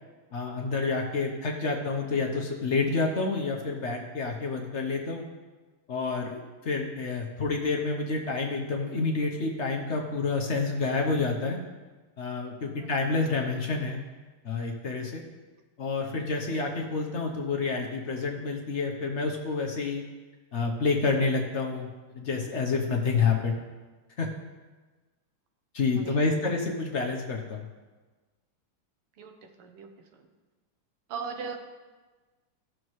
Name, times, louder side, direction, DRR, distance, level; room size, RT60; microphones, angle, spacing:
voice 1, 0.3-5.3 5.9-11.6 12.2-14.0 14.4-15.2 15.8-20.0 20.5-21.9 22.1-23.6 24.2-24.3 25.7-27.6, left 4 dB, 55° left, 1 dB, 0.7 m, -28 dB
voice 2, 26.0-26.5 29.2-29.3 29.6-30.3 31.1-31.6, right 5 dB, 85° right, 5 dB, 1.9 m, -39 dB
16.0 x 6.4 x 3.1 m, 1.3 s
omnidirectional pair, 2.4 m